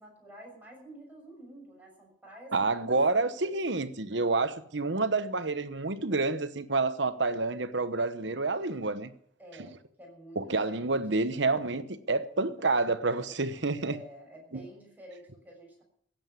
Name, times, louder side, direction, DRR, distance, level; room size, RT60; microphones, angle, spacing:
voice 1, 0.0-3.5 9.4-11.1 13.2-15.8, right 1 dB, 10° right, 6.4 m, -50 dB
voice 2, 2.5-9.1 10.4-14.0 14.5-14.6, right 3 dB, 65° right, 1.1 m, -28 dB
15.5 x 8.9 x 9.4 m
head